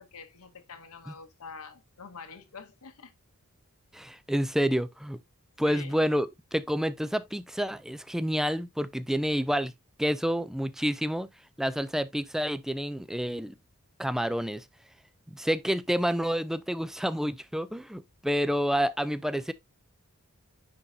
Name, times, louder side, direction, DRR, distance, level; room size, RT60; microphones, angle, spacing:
voice 1, 0.0-3.1 5.6-5.9, left 5 dB, 75° left, 0.9 m, -46 dB
voice 2, 3.9-5.2 5.6-9.7 10.0-11.3 11.6-13.5 14.0-14.6 15.3-19.5, equal, ahead, 0.4 m, -29 dB
9.7 x 3.8 x 2.7 m
head